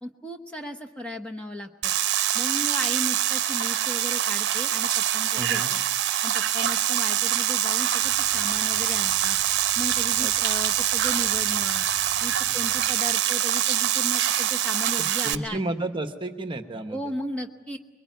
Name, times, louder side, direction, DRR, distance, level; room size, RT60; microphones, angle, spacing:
voice 1, 0.0-1.9 2.3-5.8 6.2-9.4 9.8-11.9 12.2-15.7 16.9-17.8, left 1 dB, 5° left, 2 dB, 1.1 m, -36 dB
sound 1, 1.8-15.3, right 11 dB, 50° right, 0.9 m, -24 dB
voice 2, 5.3-5.7 10.1-10.3 15.0-17.0, right 2 dB, 20° right, 7 dB, 1.1 m, -32 dB
sound 2, 8.0-13.0, equal, 50° left, 3.9 m, -49 dB
25.0 x 22.0 x 9.3 m, 1.3 s
head